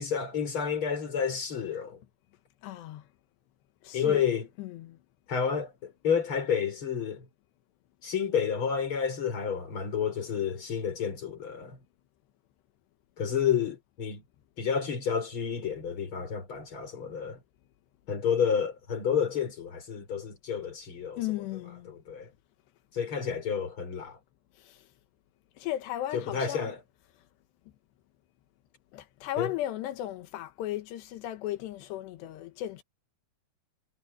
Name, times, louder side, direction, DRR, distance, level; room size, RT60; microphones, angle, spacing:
voice 1, 0.0-2.0 3.9-4.5 5.3-7.3 8.0-11.8 13.2-14.2 14.6-17.4 18.1-21.3 21.9-22.3 22.9-24.2 26.1-26.8 29.4-29.5, left 7 dB, 30° left, 5.1 m, -30 dB
voice 2, 2.6-3.0 3.8-4.2 4.6-5.0 21.2-21.9 24.6-24.8 25.6-26.6 28.9-32.8, left 13 dB, 90° left, 3.4 m, -36 dB
omnidirectional pair, 4.8 m